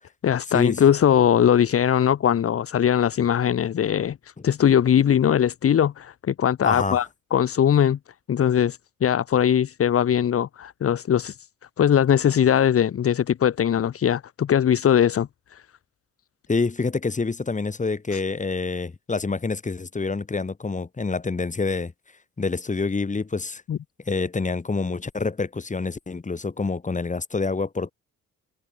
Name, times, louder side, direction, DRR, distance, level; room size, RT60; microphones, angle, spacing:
voice 1, 0.2-8.0 8.3-11.4 11.8-15.6 18.1-18.2 23.7-23.8, left 9 dB, 50° left, 1.3 m, -20 dB
voice 2, 6.6-7.1 16.5-21.9 22.4-23.6 24.1-27.9, left 4 dB, 25° left, 3.7 m, -27 dB
cardioid pair, 90°, 30 cm